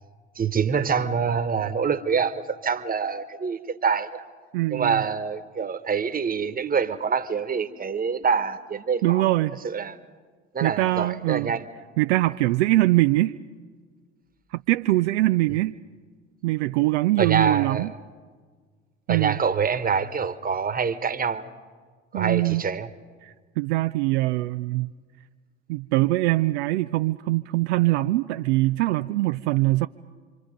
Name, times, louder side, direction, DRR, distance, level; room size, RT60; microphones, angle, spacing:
voice 1, 0.3-4.2 4.7-9.3 9.6-10.0 10.5-11.7 17.2-17.9 19.1-21.4 22.1-22.9, right 6 dB, 25° right, 1.4 m, -25 dB
voice 2, 4.5-5.0 9.0-9.6 10.6-11.5 12.0-13.4 14.5-15.8 16.4-17.9 19.1-19.4 22.1-22.6 23.2-24.9 25.7-29.9, right 18 dB, 65° right, 0.6 m, -23 dB
27.5 x 25.5 x 5.2 m
figure-of-eight pair, 60°, 36 cm